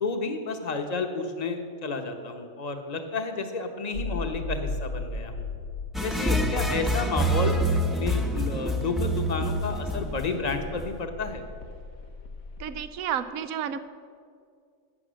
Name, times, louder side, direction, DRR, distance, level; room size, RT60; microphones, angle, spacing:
voice 1, 0.0-5.5 6.0-7.6 7.9-11.4, left 3 dB, 35° left, 5 dB, 1.0 m, -31 dB
sound 1, 3.9-12.9, left 3 dB, 80° left, 1.4 m, -38 dB
sound 2, 5.9-11.0, right 1 dB, ahead, 0.6 m, -27 dB
voice 2, 12.6-13.8, right 9 dB, 80° right, 11 dB, 1.1 m, -31 dB
12.5 x 8.6 x 6.3 m, 2.3 s
omnidirectional pair, 1.4 m